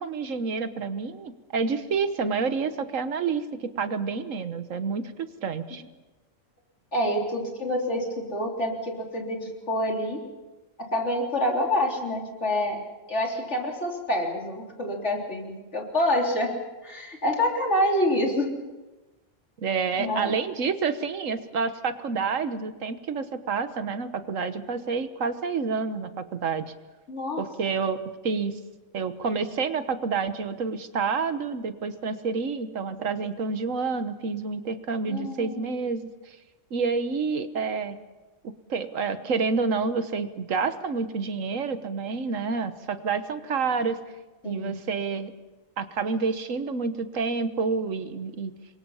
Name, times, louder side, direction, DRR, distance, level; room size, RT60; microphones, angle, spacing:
voice 1, 0.0-5.0 5.4-5.8 19.6-26.6 27.4-28.5 28.9-36.4 36.7-38.0 38.7-44.0 44.4-45.3 45.8-48.5, right 5 dB, 75° right, 10 dB, 1.5 m, -28 dB
voice 2, 6.9-10.2 10.8-12.8 13.1-16.5 16.8-18.5 20.0-20.4 27.1-27.4 35.1-35.7 44.4-44.8, left 1 dB, 60° left, 0 dB, 3.8 m, -27 dB
27.0 x 23.0 x 5.6 m, 1.2 s
omnidirectional pair, 1.3 m